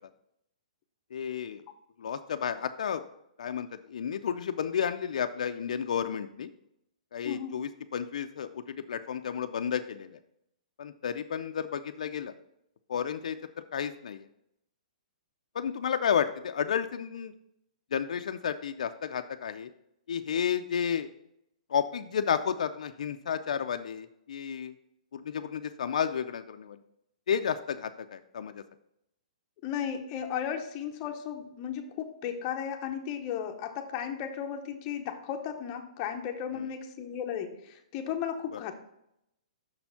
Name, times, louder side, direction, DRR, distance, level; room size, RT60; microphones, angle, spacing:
voice 1, 1.1-1.6 2.0-3.0 3.4-6.5 7.1-10.2 10.8-12.3 12.9-13.4 13.7-14.3 15.5-17.3 17.9-19.7 20.1-21.1 21.7-24.7 25.1-26.8 27.3-28.6 36.5-36.7 38.5-38.6, left 8 dB, 65° left, 8 dB, 0.4 m, -32 dB
voice 2, 7.2-7.6 29.6-38.7, left 8 dB, 25° left, 4 dB, 0.7 m, -35 dB
6.3 x 4.3 x 5.7 m, 0.80 s
hypercardioid pair, 170°, 4 cm